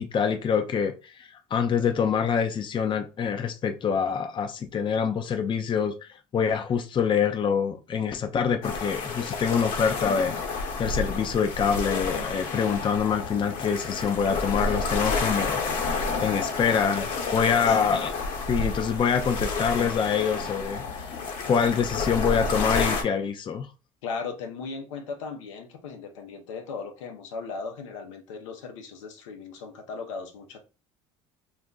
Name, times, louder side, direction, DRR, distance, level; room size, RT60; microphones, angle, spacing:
voice 1, 0.0-18.1 18.5-21.2 21.5-23.7, left 7 dB, 30° left, 0.5 m, -26 dB
sound 1, 8.6-23.0, left 4 dB, 60° left, 1.1 m, -30 dB
voice 2, 17.0-18.0 24.0-30.6, left 4 dB, 85° left, 0.7 m, -37 dB
2.5 x 2.2 x 3.8 m
hypercardioid pair, 80°, 16 cm